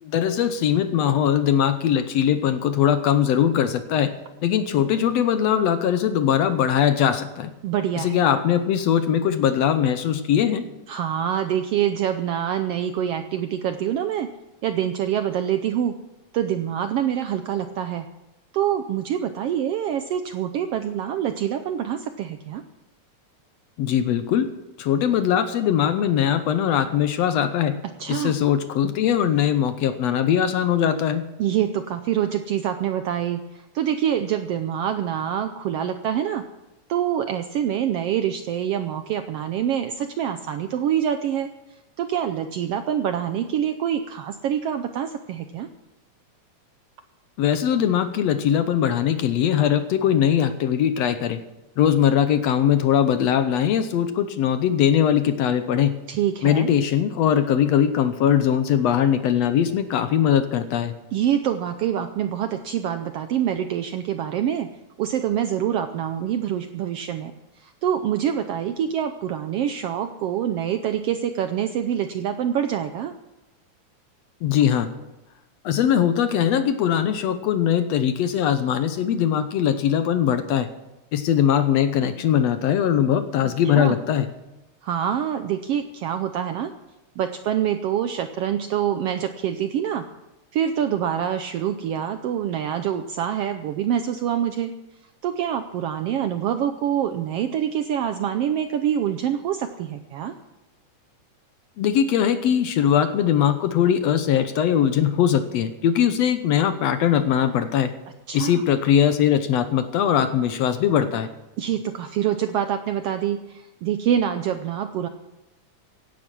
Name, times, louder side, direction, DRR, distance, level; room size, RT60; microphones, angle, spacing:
voice 1, 0.0-7.5 8.0-10.6 23.8-24.5 24.8-27.8 28.1-31.2 47.4-51.4 51.8-55.9 56.4-60.9 74.4-74.9 75.6-80.7 81.1-84.3 101.8-107.9 108.3-111.3, left 9 dB, 70° left, 10 dB, 1.8 m, -21 dB
voice 2, 7.6-8.2 10.9-14.3 14.6-16.0 16.3-18.1 18.5-22.6 28.0-28.3 31.4-36.4 36.9-41.5 42.0-45.7 56.1-56.7 61.1-64.7 65.0-67.3 67.6-73.1 83.7-84.0 84.8-86.7 87.2-90.0 90.5-94.7 95.2-100.3 108.3-108.6 111.6-115.1, right 9 dB, 75° right, 8 dB, 1.4 m, -25 dB
17.0 x 10.5 x 6.1 m, 0.96 s
omnidirectional pair, 3.4 m